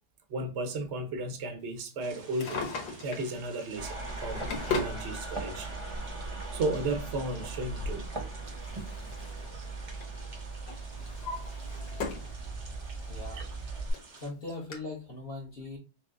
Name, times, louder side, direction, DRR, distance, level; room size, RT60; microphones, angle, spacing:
voice 1, 0.3-2.6 3.0-4.4 4.7-5.7 6.5-8.1 13.3-13.5, right 2 dB, 55° right, 0.8 m, -34 dB
sound 1, 2.0-14.3, right 3 dB, 70° right, 0.4 m, -52 dB
Drawer open or close, 2.2-3.3 4.0-5.0 6.1-6.2 7.9-9.5 9.8-10.2 10.7-12.3 12.8-12.9 13.6-13.7 13.9-14.0 14.7-14.8, left 3 dB, 90° left, 1.8 m, -37 dB
sound 2, 3.7-13.9, right 2 dB, 25° right, 0.7 m, -39 dB
voice 2, 13.1-13.4 14.2-15.8, left 2 dB, 45° left, 0.8 m, -40 dB
5.9 x 2.1 x 2.4 m
omnidirectional pair, 1.9 m